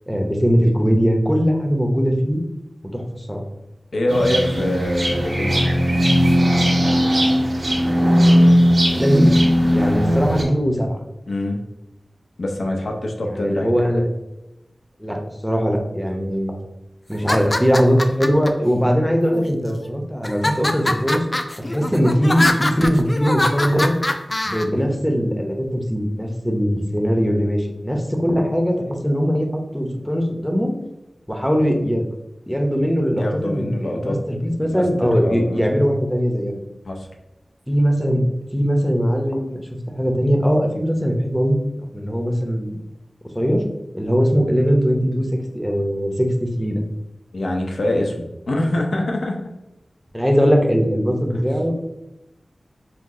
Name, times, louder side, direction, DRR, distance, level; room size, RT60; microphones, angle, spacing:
voice 1, 0.1-2.4 2.9-3.4 8.9-9.4 9.7-11.0 13.2-14.1 15.0-16.5 17.1-21.3 21.7-24.0 24.4-30.8 31.3-32.0 32.5-36.6 37.7-38.2 38.5-39.7 40.0-41.6 41.9-42.7 43.3-43.6 43.9-45.3 45.5-46.8 50.1-51.7, equal, ahead, 2 dB, 0.7 m, -20 dB
voice 2, 3.9-5.7 11.3-11.6 12.4-13.7 33.1-34.2 34.6-35.6 36.8-37.1 47.3-49.4, left 1 dB, 85° left, 1 dB, 0.7 m, -24 dB
sound 1, 4.1-10.4, equal, 55° right, 1.2 m, -17 dB
sound 2, 17.1-18.5 19.2-19.8 20.2-24.6, left 1 dB, 30° left, 0.4 m, -23 dB
5.8 x 2.0 x 3.6 m, 0.92 s
wide cardioid pair, 75°, 0 cm